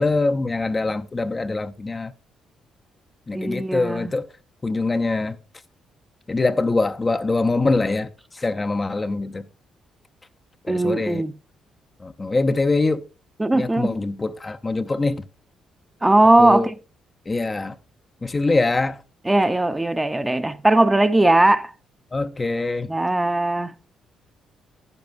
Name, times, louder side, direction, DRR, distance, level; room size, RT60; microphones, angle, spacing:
voice 1, 0.0-2.1 3.3-4.3 4.6-5.4 6.3-8.1 8.3-9.4 10.6-11.2 12.0-13.0 13.5-15.2 16.4-16.7 17.3-17.8 18.2-19.0 22.1-22.9, left 3 dB, 30° left, 0.6 m, -23 dB
voice 2, 3.3-4.1 10.7-11.3 13.4-14.0 16.0-16.7 19.2-21.7 22.9-23.7, right 2 dB, 15° right, 0.6 m, -19 dB
10.5 x 10.5 x 2.5 m
supercardioid pair, 65°, 0 cm